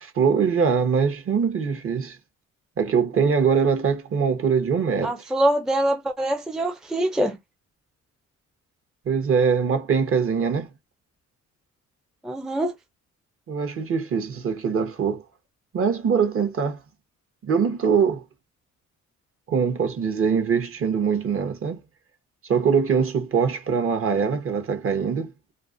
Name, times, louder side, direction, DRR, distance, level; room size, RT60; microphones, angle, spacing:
voice 1, 0.0-2.2 2.8-5.1 9.1-10.7 13.5-15.2 15.7-16.8 17.4-18.2 19.5-21.8 22.4-25.3, right 6 dB, 45° right, 0.8 m, -22 dB
voice 2, 5.0-7.4 12.2-12.7, right 1 dB, ahead, 0.4 m, -24 dB
2.4 x 2.4 x 2.4 m
cardioid pair, 90°, 30 cm